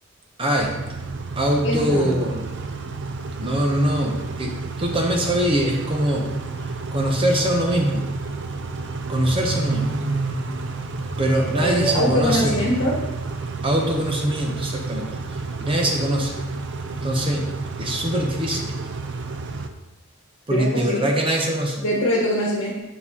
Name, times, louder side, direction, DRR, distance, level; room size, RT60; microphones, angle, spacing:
voice 1, 0.4-0.8 1.4-2.5 3.4-6.3 6.9-8.1 9.1-10.0 11.2-12.5 13.6-15.1 15.6-16.4 17.0-18.7 20.5-21.8, right 1 dB, 25° right, 1 dB, 0.7 m, -23 dB
Car / Idling / Accelerating revving vroom, 0.6-19.7, right 3 dB, 55° right, 0.5 m, -30 dB
voice 2, 1.6-2.2 11.5-13.0 20.5-21.1 21.8-22.7, equal, 60° left, -5 dB, 1.3 m, -23 dB
7.1 x 6.4 x 2.9 m, 1.0 s
head